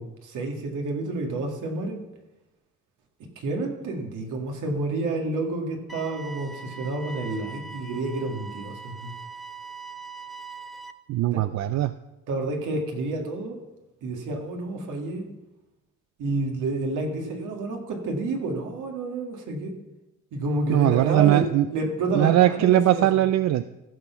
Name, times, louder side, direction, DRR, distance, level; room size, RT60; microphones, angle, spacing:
voice 1, 0.0-2.0 3.4-9.1 11.3-11.4 12.3-13.6 14.0-15.3 16.2-19.7 20.3-23.1, right 2 dB, 80° right, 3 dB, 2.1 m, -29 dB
sound 1, 5.9-10.9, right 4 dB, ahead, 0.8 m, -41 dB
voice 2, 11.1-11.9 20.7-21.7 22.1-23.6, right 13 dB, 65° right, 13 dB, 0.4 m, -20 dB
15.0 x 6.1 x 5.8 m, 1.0 s
cardioid pair, 90°, 30 cm